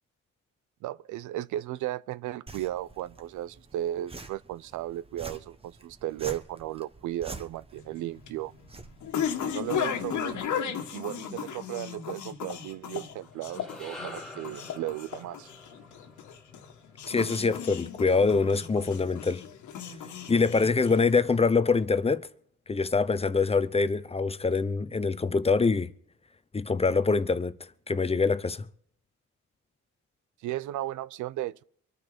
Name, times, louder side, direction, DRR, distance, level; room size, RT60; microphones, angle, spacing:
voice 1, 0.8-8.5 9.4-10.4 10.9-15.5 30.4-31.6, right 14 dB, 80° right, 0.5 m, -35 dB
sound 1, 2.5-10.5, right 3 dB, 20° right, 1.3 m, -47 dB
sound 2, 7.8-21.4, left 8 dB, 75° left, 1.8 m, -36 dB
sound 3, 13.3-17.7, left 1 dB, ahead, 2.3 m, -47 dB
voice 2, 17.1-19.4 20.3-22.3 22.7-25.9 26.5-27.6 27.9-28.7, left 4 dB, 20° left, 0.7 m, -24 dB
24.0 x 9.4 x 5.2 m
cardioid pair, 90°, 30 cm